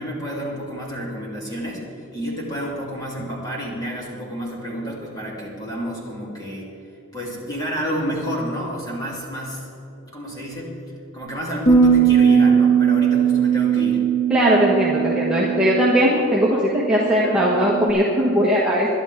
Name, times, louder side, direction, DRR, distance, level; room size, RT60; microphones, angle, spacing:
voice 1, 0.0-6.7 7.1-9.7 10.1-10.7 11.1-14.0, equal, 15° left, -4 dB, 3.2 m, -30 dB
sound 1, 11.7-17.9, right 7 dB, 35° left, 2.1 m, -19 dB
voice 2, 14.3-18.9, equal, 5° right, -6 dB, 1.4 m, -19 dB
23.0 x 11.0 x 3.7 m, 3.0 s
head